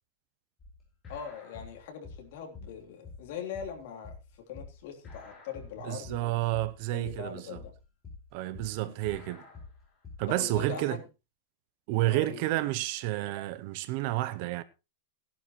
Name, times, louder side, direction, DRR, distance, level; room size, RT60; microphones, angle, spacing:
sound 1, 0.6-10.6, left 4 dB, 15° left, 5.1 m, -47 dB
voice 1, 1.1-4.1 4.5-6.3 6.9-7.7 8.8-9.0 10.3-11.1 12.1-12.5, left 7 dB, 55° left, 3.4 m, -41 dB
voice 2, 5.8-7.6 8.3-9.4 10.2-11.0 11.9-14.6, right 16 dB, 40° right, 0.7 m, -30 dB
17.0 x 11.0 x 3.1 m
supercardioid pair, 175°, 0 cm